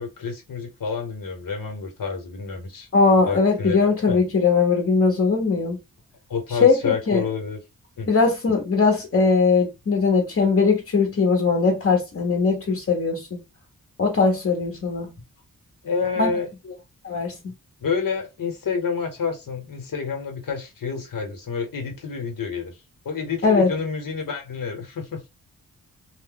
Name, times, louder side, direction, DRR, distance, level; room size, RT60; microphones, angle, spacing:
voice 1, 0.0-2.9 3.2-3.8 4.1-4.2 6.3-7.6 8.0-8.1 15.8-16.5 17.8-22.7 23.0-25.3, left 5 dB, 70° left, 1.2 m, -29 dB
voice 2, 2.9-5.8 6.6-7.2 8.1-13.4 14.0-15.1 16.2-16.3 17.0-17.4 23.4-23.7, left 4 dB, 40° left, 1.0 m, -20 dB
2.6 x 2.1 x 3.8 m
cardioid pair, 75°, 34 cm